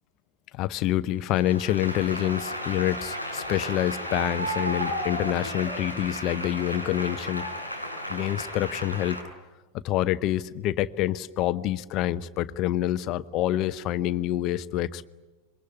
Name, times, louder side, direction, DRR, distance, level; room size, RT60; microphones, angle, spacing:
voice 1, 0.5-7.5 8.1-9.2 9.7-15.1, left 13 dB, 40° left, 14 dB, 0.9 m, -27 dB
Applause, 1.3-9.2, equal, 90° right, 6.2 m, -33 dB
26.5 x 23.5 x 9.5 m, 1.2 s
figure-of-eight pair, 90°, 0 cm